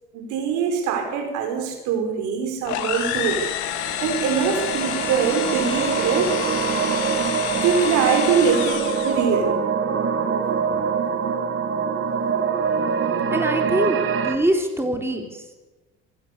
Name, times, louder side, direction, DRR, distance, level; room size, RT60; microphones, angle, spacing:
voice 1, 0.1-3.4 4.0-6.4 6.7-6.8 7.6-9.6 10.7-10.8, right 6 dB, 75° right, 4 dB, 5.1 m, -23 dB
sound 1, 2.6-9.3, left 10 dB, 85° left, 2.5 m, -29 dB
sound 2, 3.6-14.4, right 6 dB, 45° right, 3.0 m, -24 dB
voice 2, 13.3-14.0 14.2-15.4, right 1 dB, 10° right, 4 dB, 3.8 m, -23 dB
26.0 x 16.0 x 6.8 m, 1.2 s
supercardioid pair, 75°, 29 cm